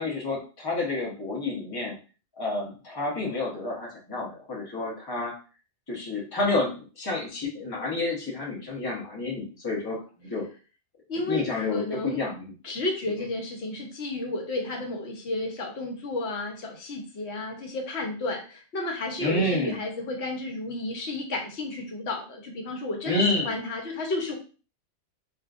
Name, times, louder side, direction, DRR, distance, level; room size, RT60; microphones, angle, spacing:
voice 1, 0.0-1.9 2.4-5.4 5.9-10.0 10.3-10.5 11.3-12.5 19.2-19.8 23.1-23.6, left 2 dB, 20° left, -3 dB, 0.9 m, -29 dB
voice 2, 11.1-12.2 12.6-24.3, left 2 dB, 70° left, 1 dB, 1.1 m, -32 dB
3.5 x 2.6 x 2.4 m, 0.35 s
omnidirectional pair, 1.2 m